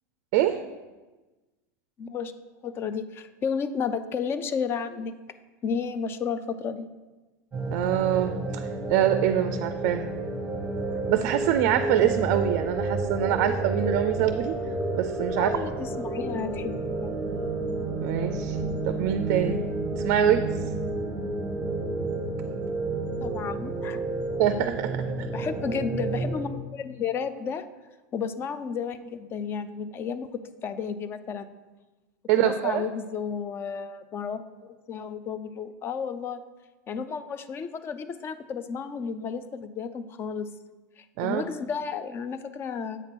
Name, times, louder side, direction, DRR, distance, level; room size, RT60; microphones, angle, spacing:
voice 1, 2.0-2.3 2.6-5.1 5.6-6.9 15.4-17.1 23.2-24.0 25.3-27.7 28.1-31.5 32.4-34.4 34.9-36.4 36.9-40.5 41.0-43.0, left 6 dB, 25° left, 13 dB, 0.3 m, -32 dB
sound 1, 7.5-26.4, right 2 dB, 10° right, 1.0 m, -30 dB
voice 2, 7.7-10.2 11.1-14.5 14.9-15.6 18.0-18.6 18.8-19.7 20.0-20.6 24.4-25.3 32.3-32.8 41.2-41.4, right 11 dB, 55° right, 9 dB, 0.4 m, -25 dB
7.9 x 2.9 x 6.0 m, 1.2 s
supercardioid pair, 140°, 9 cm